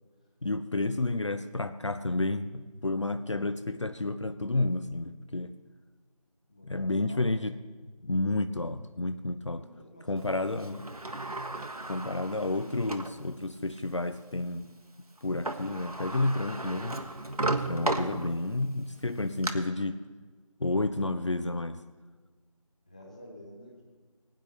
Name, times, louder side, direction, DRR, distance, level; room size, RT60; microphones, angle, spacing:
voice 1, 0.4-5.5 6.6-7.5 8.0-9.7 10.1-10.8 11.9-14.7 15.2-17.0 17.7-20.0 20.6-21.8, left 2 dB, 55° left, 10 dB, 0.6 m, -30 dB
voice 2, 6.5-7.3 9.6-10.9 22.9-23.8, left 1 dB, 10° left, -1 dB, 1.0 m, -51 dB
Sliding door, 10.6-13.2 13.8-13.9 15.2-15.3 15.4-18.6 19.1-19.5, right 2 dB, 80° right, 1.4 m, -34 dB
20.5 x 9.8 x 3.3 m, 1.4 s
figure-of-eight pair, 170°, 19 cm